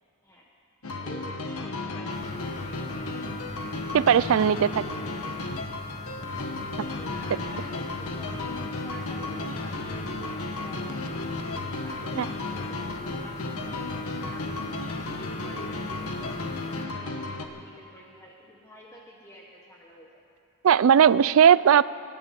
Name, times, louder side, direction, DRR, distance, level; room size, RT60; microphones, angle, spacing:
sound 1, 0.8-17.5, left 2 dB, 90° left, 1.2 m, -34 dB
voice 1, 0.8-2.8 4.5-5.3 5.6-5.8 7.0-11.3 11.7-15.7 16.0-20.1, equal, 15° left, -3 dB, 1.3 m, -49 dB
sound 2, 2.1-16.9, left 2 dB, 35° left, 1.0 m, -40 dB
voice 2, 3.9-4.7 12.2-12.3 20.6-21.8, right 8 dB, 70° right, 18 dB, 0.3 m, -18 dB
25.0 x 12.0 x 4.4 m, 2.5 s
head